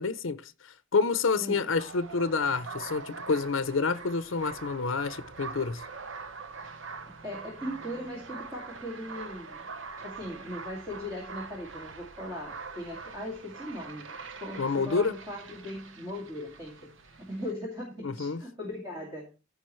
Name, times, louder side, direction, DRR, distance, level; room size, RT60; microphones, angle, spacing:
voice 1, 0.0-5.8 14.6-15.1 18.0-18.4, left 4 dB, 75° left, 0.6 m, -28 dB
voice 2, 1.4-1.7 7.0-9.7 10.0-14.1 14.4-19.3, left 1 dB, 20° right, 2.3 m, -39 dB
sound 1, 1.8-17.5, right 4 dB, 70° right, 0.9 m, -44 dB
14.5 x 4.9 x 3.1 m
head